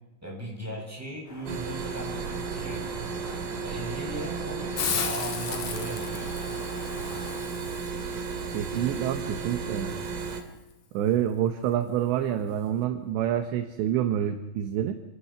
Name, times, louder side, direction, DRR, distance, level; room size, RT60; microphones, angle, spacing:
voice 1, 0.2-2.8 3.6-6.3, right 1 dB, 5° right, -2 dB, 6.6 m, -38 dB
sound 1, 1.3-7.4, left 1 dB, 35° left, 8.8 m, -45 dB
sound 2, 1.5-10.4, right 5 dB, 55° right, 3.0 m, -34 dB
Hiss, 4.8-10.4, left 7 dB, 55° left, 2.0 m, -36 dB
voice 2, 8.5-9.9 10.9-15.0, right 10 dB, 75° right, 7 dB, 3.0 m, -27 dB
26.5 x 18.5 x 5.9 m, 1.1 s
omnidirectional pair, 5.7 m